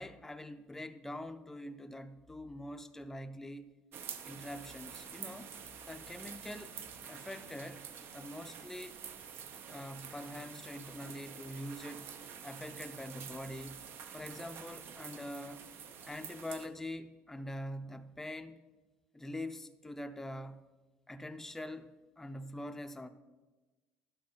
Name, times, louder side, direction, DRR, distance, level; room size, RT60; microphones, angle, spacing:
voice 1, 0.0-3.7 4.2-5.5 5.9-6.8 7.1-7.8 8.1-9.0 9.7-12.1 12.4-13.8 14.1-15.6 16.0-18.6 19.1-20.6 21.1-23.1, left 1 dB, 10° left, 0.5 m, -44 dB
sound 1, 3.9-16.7, right 7 dB, 65° right, 0.8 m, -48 dB
11.0 x 6.4 x 5.6 m
cardioid pair, 130°, 4 cm